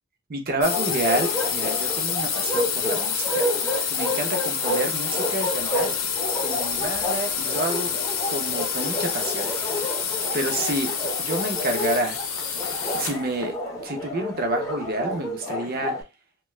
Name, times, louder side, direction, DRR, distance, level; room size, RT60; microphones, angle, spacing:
voice 1, 0.3-3.5 3.9-5.9 6.4-7.9 8.3-9.5 10.3-10.9 11.2-12.2 12.9-16.0, right 2 dB, 40° right, 0.6 m, -29 dB
sound 1, 0.6-13.3, left 7 dB, 65° left, 0.6 m, -28 dB
Bark, 0.7-16.0, left 1 dB, 15° left, 0.6 m, -31 dB
2.7 x 2.2 x 3.1 m
head